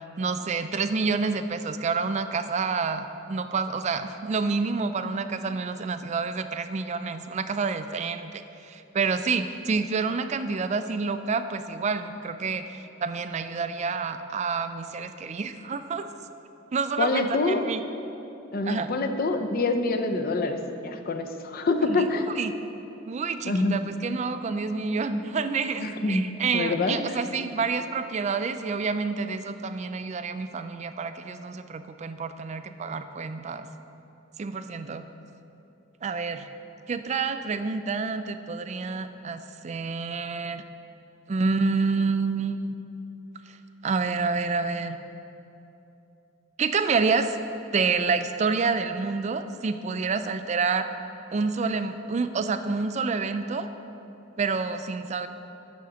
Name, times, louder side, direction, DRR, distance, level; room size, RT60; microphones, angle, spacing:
voice 1, 0.2-16.1 16.7-17.8 18.6-18.9 21.8-22.1 22.4-22.5 23.1-33.7 34.4-35.0 36.0-36.5 36.9-40.6 41.3-42.8 43.5-43.6 43.8-45.0 46.6-47.4 47.7-50.9 51.3-53.7 54.4-55.3, right 4 dB, 35° right, 10 dB, 0.3 m, -28 dB
voice 2, 17.0-17.6 18.5-20.6 20.8-22.2 23.5-23.8 25.8-26.2 26.5-27.0, left 3 dB, 45° left, 6 dB, 0.6 m, -25 dB
11.5 x 3.8 x 6.9 m, 2.9 s
head